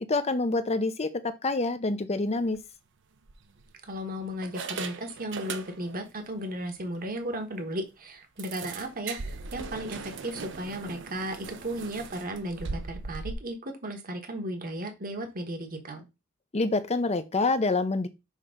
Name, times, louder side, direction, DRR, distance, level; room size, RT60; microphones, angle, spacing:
voice 1, 0.1-2.6 16.5-18.1, left 3 dB, 30° left, 0.7 m, -27 dB
sound 1, 2.4-2.6 3.3-3.9 4.4-6.1 6.4-6.5 6.9-7.0 7.4-7.5 8.4-13.3, right 4 dB, 60° right, 0.8 m, -39 dB
voice 2, 3.8-16.1, right 1 dB, 45° right, 1.3 m, -35 dB
6.5 x 3.0 x 5.0 m
head